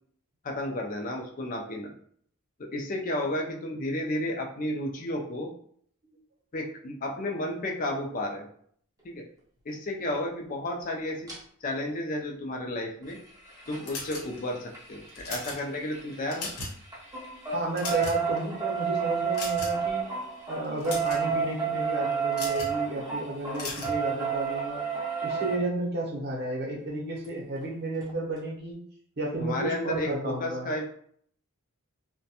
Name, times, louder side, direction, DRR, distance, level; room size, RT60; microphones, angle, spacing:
voice 1, 0.4-1.9 2.6-5.5 6.5-8.5 9.0-9.2 9.7-11.3 11.6-13.2 13.7-16.5 29.4-30.8, left 1 dB, 35° left, 1 dB, 0.4 m, -32 dB
sound 1, 11.3-11.4 13.0-16.5 16.8-25.6 27.2-27.3 27.6-27.7 28.0-28.1, right 6 dB, 15° right, 0.5 m, -31 dB
sound 2, 13.8-14.6 15.1-15.6 16.1-16.8 17.1-17.3 17.6-18.4 19.3-19.9 20.6-21.2 22.3-22.7 23.5-24.0, left 2 dB, 85° left, 0.9 m, -37 dB
voice 2, 17.5-20.0 20.5-24.8 25.2-28.8 29.2-30.7, right 2 dB, 45° right, -2 dB, 0.7 m, -32 dB
2.3 x 2.1 x 2.7 m, 0.62 s
head